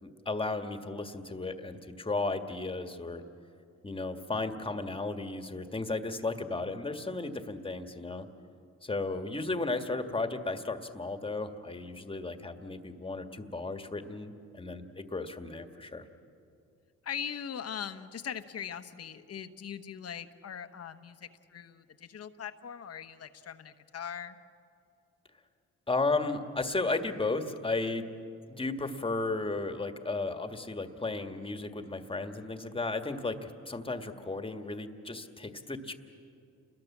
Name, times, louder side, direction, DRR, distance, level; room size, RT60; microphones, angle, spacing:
voice 1, 0.0-3.2 3.8-8.3 8.8-16.0 25.9-28.1 28.5-35.9, left 3 dB, 15° left, 7 dB, 1.7 m, -34 dB
voice 2, 17.0-24.4, left 8 dB, 55° left, 9 dB, 1.2 m, -41 dB
29.0 x 21.5 x 7.4 m, 2.5 s
cardioid pair, 90°, 30 cm